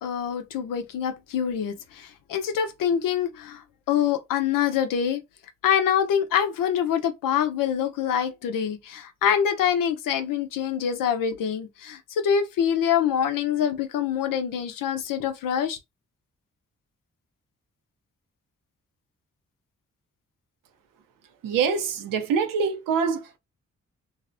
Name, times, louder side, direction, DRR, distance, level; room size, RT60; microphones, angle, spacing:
voice 1, 0.0-5.2 5.6-15.8, left 8 dB, 80° left, 0.6 m, -25 dB
voice 2, 21.4-23.4, right 6 dB, 80° right, 0.6 m, -25 dB
2.6 x 2.1 x 2.5 m
supercardioid pair, 50°, 32 cm